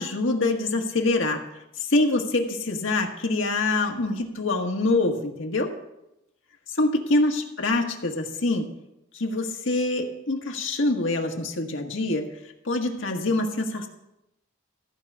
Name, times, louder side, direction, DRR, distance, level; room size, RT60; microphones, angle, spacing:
voice 1, 0.0-1.4 1.9-5.7 6.7-8.7 9.1-12.3 12.6-13.9, left 2 dB, 70° left, 2 dB, 1.6 m, -25 dB
14.5 x 4.9 x 8.0 m, 0.87 s
head